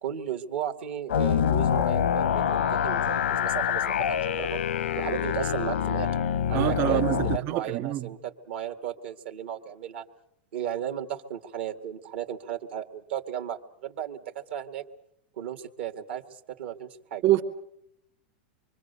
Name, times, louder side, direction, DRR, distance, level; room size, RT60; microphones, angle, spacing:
voice 1, 0.0-4.6 5.0-6.1 6.5-10.0 10.5-14.8 15.4-17.2, right 10 dB, 75° right, 4 dB, 2.1 m, -35 dB
sound 1, 1.1-7.4, left 8 dB, 90° left, 0.8 m, -26 dB
voice 2, 6.5-8.1 17.2-17.4, right 13 dB, 45° right, 3 dB, 1.9 m, -25 dB
25.5 x 23.5 x 6.9 m, 0.79 s
hypercardioid pair, 120°, 6 cm